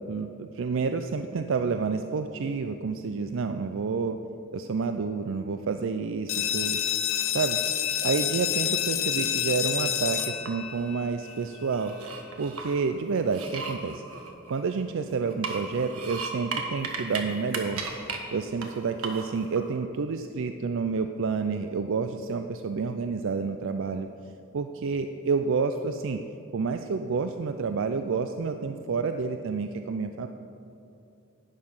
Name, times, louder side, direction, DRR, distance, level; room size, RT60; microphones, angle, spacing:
voice 1, 0.1-4.2 4.5-6.8 7.3-7.6 8.0-11.9 12.4-14.0 14.5-17.8 18.3-24.1 24.5-26.2 26.5-30.3, right 5 dB, 60° right, 7 dB, 0.4 m, -29 dB
sound 1, 6.3-11.7, left 10 dB, 65° left, 0.6 m, -28 dB
sound 2, 10.2-10.8 11.3-12.7 13.2-14.9 15.3-17.2 17.5-18.2 18.6-18.7 19.0-19.6, right 5 dB, 80° right, 1.5 m, -35 dB
11.5 x 9.5 x 5.5 m, 2.8 s
head